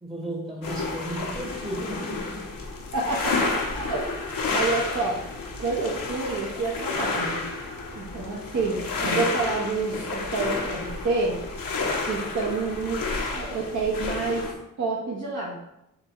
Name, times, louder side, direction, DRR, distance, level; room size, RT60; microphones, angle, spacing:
voice 1, 0.0-2.5, right 1 dB, 20° right, 0 dB, 0.9 m, -34 dB
sound 1, 0.6-14.5, left 3 dB, 80° left, 0.8 m, -30 dB
voice 2, 2.9-5.2 5.6-7.4 7.9-11.4 12.0-14.5 14.8-15.6, right 3 dB, 65° right, -4 dB, 1.0 m, -28 dB
7.0 x 2.3 x 3.0 m, 0.83 s
cardioid pair, 40°, 34 cm